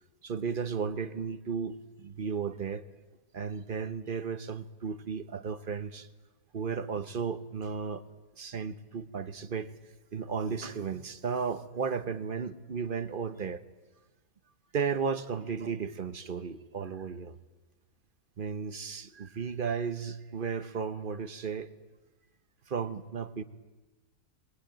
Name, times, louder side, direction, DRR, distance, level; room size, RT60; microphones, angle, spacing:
voice 1, 0.2-2.8 3.3-6.1 6.5-8.0 8.4-9.7 10.1-13.6 14.7-17.3 18.4-21.7 22.7-23.4, right 6 dB, 40° right, 12 dB, 0.9 m, -34 dB
21.0 x 20.5 x 9.0 m, 1.2 s
omnidirectional pair, 1.6 m